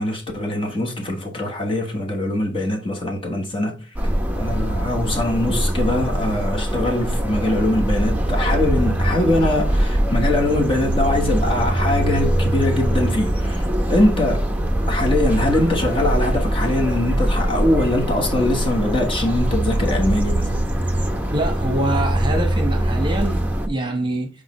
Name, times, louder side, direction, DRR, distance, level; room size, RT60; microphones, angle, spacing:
voice 1, 0.0-4.0 4.3-14.5 14.9-20.7, left 1 dB, 25° left, 1.2 m, -22 dB
sound 1, 4.0-23.7, right 1 dB, 10° right, 0.8 m, -22 dB
voice 2, 21.3-24.3, right 1 dB, 25° right, 1.1 m, -25 dB
6.4 x 4.9 x 3.1 m
head